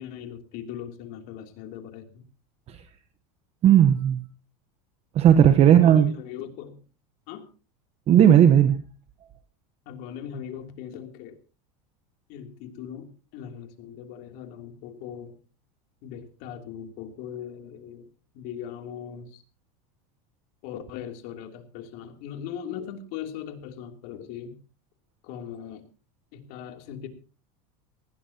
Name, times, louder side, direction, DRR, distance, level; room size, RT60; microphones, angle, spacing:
voice 1, 0.0-2.2 5.7-6.8 7.3-7.5 9.8-11.4 12.3-15.4 16.0-18.1 18.3-19.4 20.6-24.6 25.2-25.8 26.3-27.1, left 9 dB, 55° left, 5 dB, 3.1 m, -39 dB
voice 2, 3.6-4.2 5.1-6.1 8.1-8.8, right 10 dB, 35° right, 11 dB, 1.1 m, -16 dB
19.0 x 17.5 x 2.9 m, 0.34 s
supercardioid pair, 140°, 18 cm